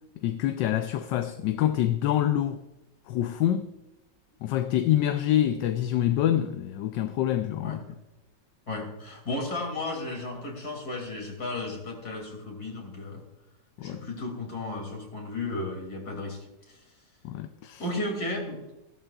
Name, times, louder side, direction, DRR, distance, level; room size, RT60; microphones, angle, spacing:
voice 1, 0.2-2.6 3.1-3.7 4.4-7.8 13.8-14.1 17.2-17.8, left 11 dB, 80° left, 1.3 m, -26 dB
voice 2, 8.7-13.2 13.8-16.8 17.8-18.6, left 2 dB, 55° left, 3.3 m, -34 dB
16.0 x 12.5 x 2.4 m
omnidirectional pair, 1.9 m